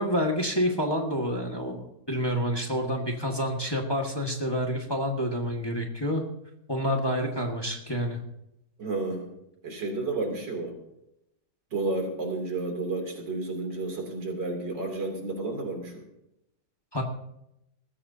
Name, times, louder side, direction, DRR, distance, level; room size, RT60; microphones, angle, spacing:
voice 1, 0.0-6.2 6.7-8.2 16.9-17.0, equal, 15° left, 1 dB, 1.7 m, -28 dB
voice 2, 8.8-9.3 9.6-10.8 11.7-16.0, right 3 dB, 85° right, 1 dB, 3.8 m, -31 dB
20.5 x 14.5 x 2.8 m, 0.83 s
omnidirectional pair, 1.9 m